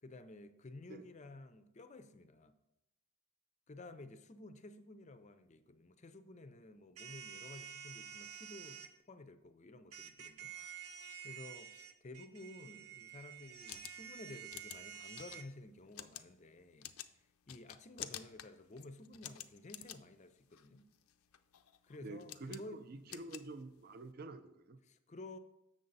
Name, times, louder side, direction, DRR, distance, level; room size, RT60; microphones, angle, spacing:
voice 1, 0.0-2.5 3.7-10.5 11.2-16.9 17.5-20.9 21.8-23.2 24.8-25.4, left 2 dB, 35° left, 0.4 m, -53 dB
sound 1, 7.0-8.9 9.9-15.4, right 8 dB, 85° right, 0.7 m, -50 dB
sound 2, 13.4-24.1, left 12 dB, 85° left, 0.4 m, -52 dB
voice 2, 22.0-24.8, right 2 dB, 45° right, 0.5 m, -48 dB
7.6 x 6.4 x 4.0 m
head